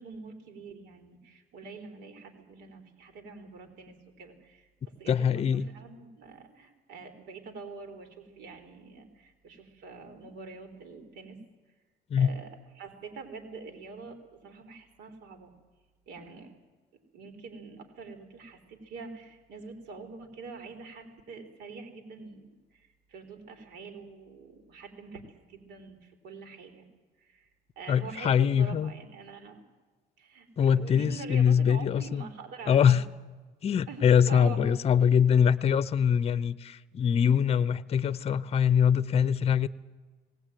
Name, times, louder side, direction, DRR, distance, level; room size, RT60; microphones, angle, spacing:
voice 1, 0.0-11.4 12.2-12.5 12.8-15.5 16.1-16.6 17.1-25.2 25.5-26.8 27.2-27.5 27.8-29.6 30.2-30.5 30.8-33.1 33.9-34.0 34.3-34.7, right 4 dB, 85° right, 5 dB, 3.8 m, -45 dB
voice 2, 5.1-5.7 12.1-12.3 27.9-28.9 30.6-32.2 32.7-33.1 33.6-39.7, left 8 dB, 35° left, 16 dB, 0.6 m, -23 dB
19.0 x 18.5 x 9.1 m, 1.3 s
cardioid pair, 110°, 17 cm